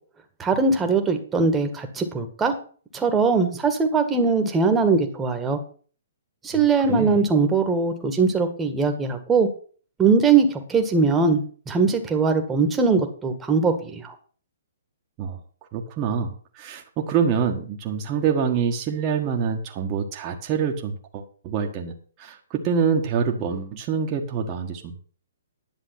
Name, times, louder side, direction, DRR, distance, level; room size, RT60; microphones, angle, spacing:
voice 1, 0.4-2.5 2.9-5.6 6.4-9.5 10.0-14.1, right 4 dB, 15° right, 5 dB, 1.8 m, -21 dB
voice 2, 6.5-7.2 15.2-15.4 15.7-25.0, right 6 dB, 30° right, 1 dB, 1.6 m, -26 dB
11.0 x 7.2 x 6.0 m, 0.43 s
hypercardioid pair, 135°, 0 cm